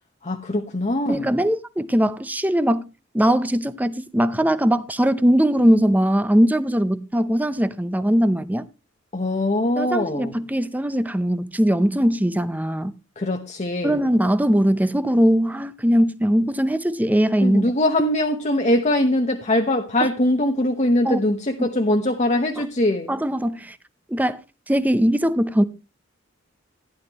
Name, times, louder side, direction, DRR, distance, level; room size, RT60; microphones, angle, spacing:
voice 1, 0.2-1.3 9.1-10.4 13.2-14.0 17.4-23.2, left 1 dB, 35° left, 1.0 m, -22 dB
voice 2, 1.1-2.9 3.1-8.7 9.8-12.9 13.8-17.7 21.1-21.2 21.6-21.7 22.6-22.7 23.1-23.8 24.1-24.4 24.7-25.6, equal, 10° right, 0.6 m, -20 dB
15.5 x 11.0 x 3.0 m
head